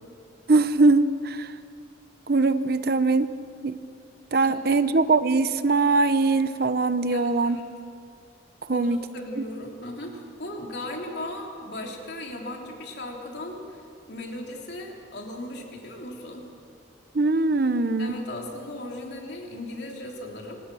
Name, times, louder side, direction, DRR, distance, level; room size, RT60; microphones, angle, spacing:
voice 1, 0.5-1.5 2.3-3.3 3.6-3.8 4.3-7.6 8.7-9.0 17.1-18.2, right 3 dB, 50° right, 12 dB, 0.7 m, -21 dB
voice 2, 4.4-4.8 7.1-7.6 8.7-16.4 18.0-20.6, left 1 dB, 55° left, 0 dB, 3.4 m, -37 dB
26.5 x 19.5 x 6.3 m, 2.3 s
head